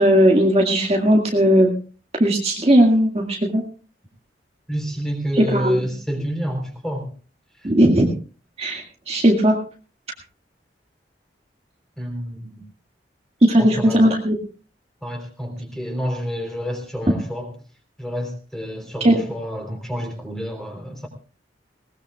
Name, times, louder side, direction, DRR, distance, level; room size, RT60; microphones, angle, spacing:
voice 1, 0.0-1.7 2.2-3.6 5.5-5.8 7.6-8.1 8.6-9.6 13.4-14.4 19.0-19.2, equal, 35° right, 0 dB, 1.9 m, -17 dB
voice 2, 4.7-7.1 7.6-7.7 12.0-12.6 13.6-14.1 15.0-17.5 18.0-21.1, equal, 5° left, 3 dB, 3.6 m, -29 dB
20.5 x 18.5 x 2.4 m, 0.37 s
head